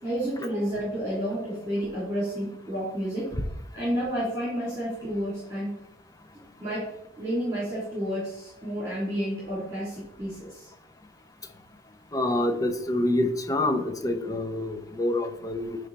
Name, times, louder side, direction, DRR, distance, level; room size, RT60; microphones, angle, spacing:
voice 1, 0.0-3.3 3.7-5.7 6.6-6.9 7.2-10.7, equal, 15° right, -9 dB, 2.7 m, -30 dB
voice 2, 12.1-15.8, left 1 dB, 20° left, 6 dB, 0.6 m, -26 dB
9.2 x 3.4 x 4.0 m, 0.81 s
head